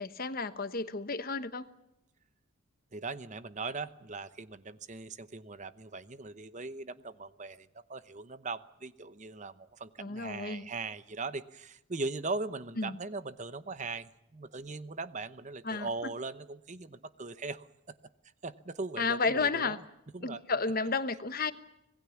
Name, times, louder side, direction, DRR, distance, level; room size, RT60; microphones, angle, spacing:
voice 1, 0.0-1.7 10.0-10.7 12.8-13.0 15.6-16.1 19.0-19.8 20.2-21.5, left 4 dB, 40° left, 12 dB, 1.2 m, -32 dB
voice 2, 2.9-17.7 18.4-19.8 20.1-20.4, right 3 dB, 35° right, 13 dB, 0.9 m, -40 dB
26.0 x 19.5 x 7.2 m, 0.84 s
head